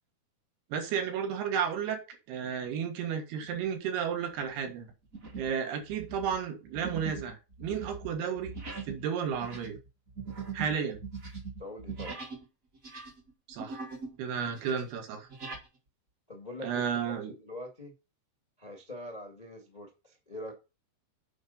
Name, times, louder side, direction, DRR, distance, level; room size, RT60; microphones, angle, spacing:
voice 1, 0.7-4.9 5.4-8.5 8.9-9.8 10.5-11.0 13.5-13.8 14.2-15.3 16.6-17.3, right 7 dB, 90° right, 5 dB, 3.6 m, -33 dB
sound 1, 3.4-3.8 4.3-4.5 5.1-5.6 5.9-12.5 12.7-14.2 14.5-15.7, right 5 dB, 55° right, 0.9 m, -41 dB
voice 2, 11.6-12.2 16.3-17.9 18.6-20.5, left 1 dB, 30° left, 2 dB, 0.7 m, -44 dB
8.4 x 5.2 x 5.6 m, 0.28 s
omnidirectional pair, 4.5 m